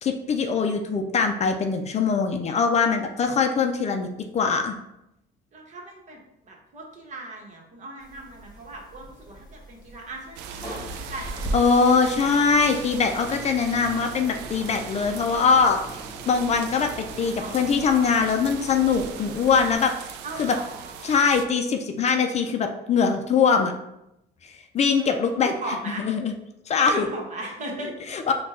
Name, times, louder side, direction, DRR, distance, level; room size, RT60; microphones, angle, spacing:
voice 1, 0.0-4.1 4.3-4.8 11.5-15.8 16.3-16.9 17.2-19.9 20.4-20.6 21.0-23.7 24.7-26.3 26.7-27.1 28.1-28.3, left 5 dB, 40° left, 5 dB, 0.5 m, -22 dB
voice 2, 5.5-6.2 6.4-12.3 17.2-17.6 20.2-21.1 25.0-26.0 26.9-27.9, right 2 dB, 45° right, 0 dB, 1.2 m, -38 dB
sound 1, 8.0-19.7, right 1 dB, 25° left, 1.2 m, -40 dB
sound 2, 10.4-21.5, right 7 dB, 90° right, 0.4 m, -40 dB
4.4 x 2.3 x 4.2 m, 0.86 s
cardioid pair, 110°, 17 cm